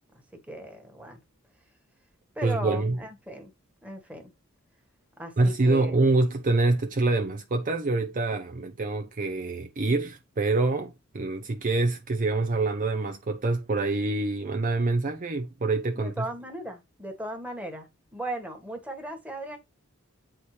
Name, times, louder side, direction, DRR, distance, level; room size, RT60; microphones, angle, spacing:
voice 1, 0.5-1.2 2.3-3.5 3.8-4.3 5.2-5.9 15.9-19.6, right 1 dB, 5° right, 1.5 m, -37 dB
voice 2, 2.4-3.0 5.4-16.3, right 2 dB, 40° right, 0.6 m, -26 dB
7.9 x 4.5 x 3.2 m
head